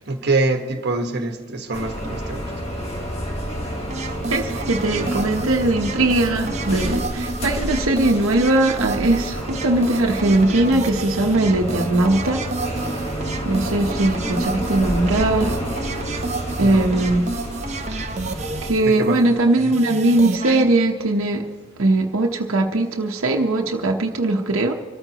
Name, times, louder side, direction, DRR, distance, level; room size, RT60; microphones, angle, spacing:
voice 1, 0.1-2.5 16.6-17.1 18.8-19.3, right 3 dB, 55° right, 5 dB, 1.4 m, -25 dB
sound 1, 1.7-18.7, equal, 30° left, 1.7 m, -29 dB
sound 2, 3.9-20.7, right 3 dB, 35° right, 0.8 m, -31 dB
voice 2, 4.3-12.4 12.7-12.8 13.4-15.5 16.6-17.2 18.6-21.4 21.8-24.7, right 2 dB, 85° right, 1 dB, 1.0 m, -20 dB
25.5 x 14.0 x 3.0 m, 1.5 s
head